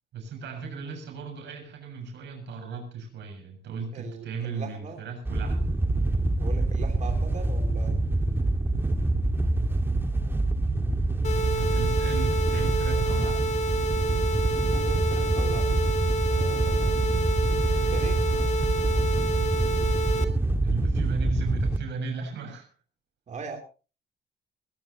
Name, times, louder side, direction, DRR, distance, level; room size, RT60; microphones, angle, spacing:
voice 1, 0.1-5.7 11.5-13.4 20.6-22.7, right 4 dB, 90° right, 4 dB, 6.9 m, -35 dB
voice 2, 3.9-5.0 6.4-8.0 14.7-15.9 16.3-17.0 17.8-18.2 23.3-23.6, right 5 dB, 45° right, 2 dB, 3.1 m, -39 dB
Wind / Boat Water vehicle, 5.3-21.8, right 2 dB, 10° right, 1.7 m, -25 dB
sound 1, 11.2-20.2, right 2 dB, 40° left, 2.3 m, -29 dB
20.5 x 19.0 x 2.9 m, 0.34 s
cardioid pair, 135°, 18 cm